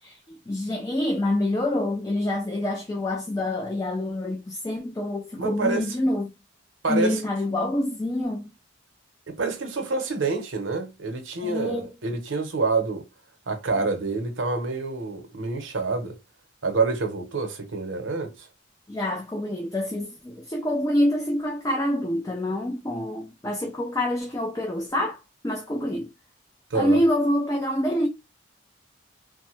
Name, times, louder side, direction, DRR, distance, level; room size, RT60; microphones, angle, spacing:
voice 1, 0.0-6.3 6.9-8.5 11.4-11.9 18.9-25.2 25.4-26.1 26.7-28.1, left 1 dB, 15° left, 0.4 m, -26 dB
voice 2, 5.4-5.9 6.8-7.2 9.3-13.0 13.5-16.1 16.6-18.5 26.7-27.0, right 3 dB, 75° right, 0.8 m, -27 dB
3.0 x 2.1 x 3.0 m
head